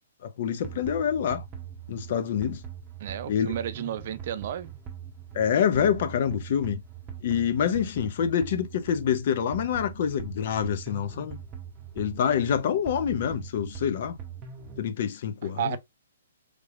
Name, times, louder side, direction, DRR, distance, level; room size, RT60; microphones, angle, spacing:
voice 1, 0.2-1.4 1.9-2.6 3.3-3.5 5.3-6.8 7.2-11.4 12.0-14.2 14.8-15.8, left 8 dB, 50° left, 0.7 m, -26 dB
sound 1, 0.6-14.9, right 8 dB, 25° right, 0.8 m, -42 dB
voice 2, 3.0-4.8 15.6-15.8, right 10 dB, 50° right, 0.4 m, -32 dB
3.4 x 3.3 x 2.4 m
hypercardioid pair, 145°, 0 cm